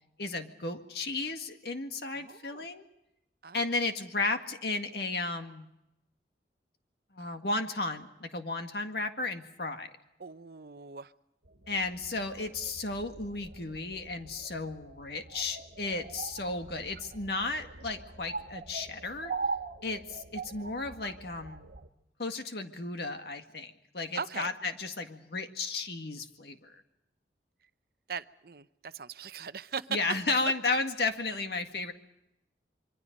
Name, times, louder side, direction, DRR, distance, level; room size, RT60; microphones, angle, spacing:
voice 1, 0.2-2.9 3.5-5.7 7.1-9.9 11.7-19.3 19.8-21.7 22.2-26.7 29.9-31.9, left 3 dB, 60° left, 6 dB, 1.9 m, -34 dB
voice 2, 2.1-2.6 3.4-3.6 10.2-11.1 24.1-24.5 28.1-29.9, right 5 dB, 55° right, 13 dB, 0.7 m, -40 dB
sound 1, 11.5-21.9, right 4 dB, 75° right, 1.5 m, -42 dB
26.0 x 24.0 x 5.3 m, 0.87 s
head